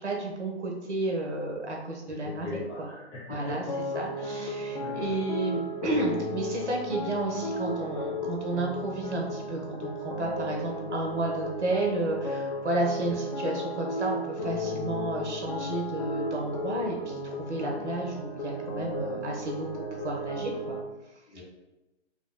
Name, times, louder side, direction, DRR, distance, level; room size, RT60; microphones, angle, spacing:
voice 1, 0.0-2.9 3.3-3.6 3.9-20.8 21.3-21.4, right 2 dB, 90° right, -1 dB, 1.1 m, -32 dB
voice 2, 2.2-3.5 4.1-4.2 4.8-5.2 13.1-13.2 21.3-21.4, left 3 dB, 25° left, -6 dB, 1.3 m, -39 dB
sound 1, 3.7-20.8, left 1 dB, 40° left, 0.4 m, -34 dB
4.1 x 2.8 x 2.2 m, 1.0 s
hypercardioid pair, 140°, 34 cm